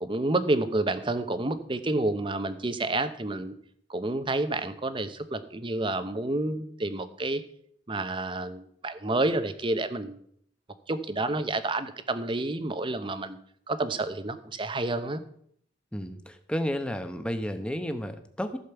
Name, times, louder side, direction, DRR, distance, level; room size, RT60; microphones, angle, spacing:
voice 1, 0.0-3.5 3.9-7.4 7.9-10.2 10.9-13.4 13.7-15.2, right 2 dB, 25° right, 11 dB, 0.8 m, -29 dB
voice 2, 15.9-18.6, equal, 5° left, 8 dB, 0.9 m, -32 dB
15.0 x 5.2 x 7.0 m, 0.66 s
head